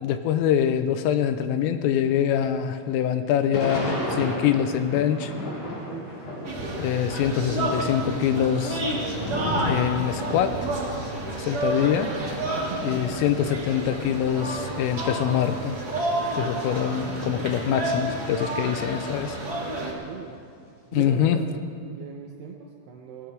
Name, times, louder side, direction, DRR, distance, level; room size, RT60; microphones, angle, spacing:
voice 1, 0.0-5.3 6.8-8.8 9.6-10.5 11.4-12.1 12.8-15.8 16.4-19.4 20.9-21.4, left 9 dB, 85° left, 9 dB, 3.3 m, -24 dB
Thunder / Rain, 3.5-7.1 7.4-14.5 15.1-15.2 15.4-18.6 18.9-20.7, equal, 50° left, 6.1 m, -35 dB
voice 2, 5.8-6.3 10.3-10.8 11.1-11.3 11.6-11.8 12.6-13.0 20.0-20.4 20.9-21.5 21.7-23.3, right 7 dB, 75° right, 1 dB, 2.4 m, -40 dB
sound 1, 6.4-19.9, right 1 dB, 40° right, 1.4 m, -30 dB
21.0 x 18.0 x 3.5 m, 2.2 s
omnidirectional pair, 5.9 m